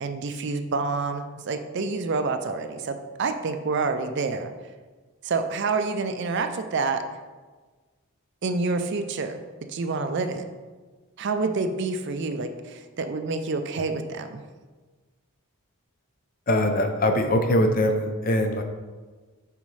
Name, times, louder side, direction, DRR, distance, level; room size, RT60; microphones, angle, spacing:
voice 1, 0.0-4.5 5.2-7.0 8.4-9.4 9.7-10.5 11.2-14.4, right 4 dB, 50° right, 7 dB, 0.4 m, -28 dB
voice 2, 16.5-18.6, left 1 dB, 40° left, 6 dB, 0.6 m, -22 dB
8.8 x 4.1 x 3.2 m, 1.4 s
head